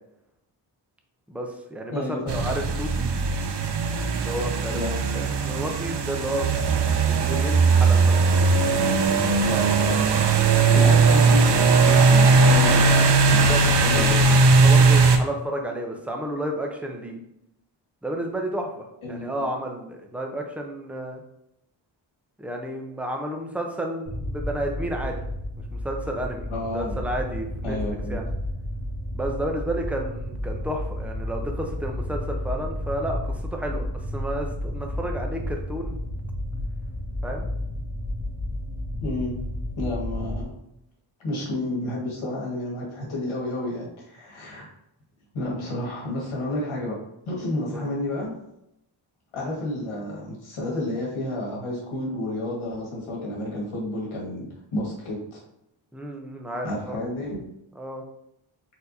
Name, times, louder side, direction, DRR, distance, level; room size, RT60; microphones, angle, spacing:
voice 1, 1.3-3.1 4.1-4.8 5.4-6.6 6.9-8.2 11.0-11.1 13.2-13.6 13.9-14.2 14.5-17.2 18.0-21.2 22.4-25.2 25.7-26.5 26.7-27.8 28.1-28.2 29.1-36.0 37.2-37.5 47.7-47.9 55.9-57.0 57.8-58.0, right 1 dB, 5° right, 2 dB, 0.7 m, -31 dB
voice 2, 1.9-2.4 4.7-4.9 9.4-10.2 10.7-14.4 19.0-19.5 26.5-27.0 27.6-28.2 39.0-39.4 39.8-40.5 41.2-44.7 45.3-46.9 47.2-48.3 49.3-54.5 54.7-55.4 56.6-57.4, left 1 dB, 90° left, -3 dB, 1.8 m, -31 dB
sound 1, 2.3-15.2, right 4 dB, 60° right, 0.6 m, -19 dB
sound 2, 24.1-40.4, left 1 dB, 40° right, 1.4 m, -32 dB
4.5 x 4.0 x 2.7 m, 0.81 s
wide cardioid pair, 105°, 47 cm